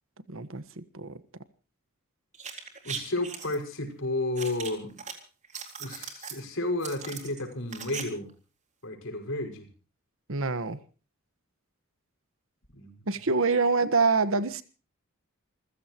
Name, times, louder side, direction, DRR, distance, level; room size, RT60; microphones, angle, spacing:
voice 1, 0.3-1.2 10.3-10.8 13.1-14.6, right 4 dB, 65° right, 1.5 m, -26 dB
sound 1, 2.3-3.6 4.4-5.1 5.4-6.4 6.8-8.0 8.3-8.4, right 6 dB, 35° right, 3.9 m, -39 dB
voice 2, 2.8-4.9 5.8-8.3 8.8-9.7 12.7-12.9, left 2 dB, 65° left, 5.8 m, -32 dB
28.5 x 15.5 x 3.0 m
head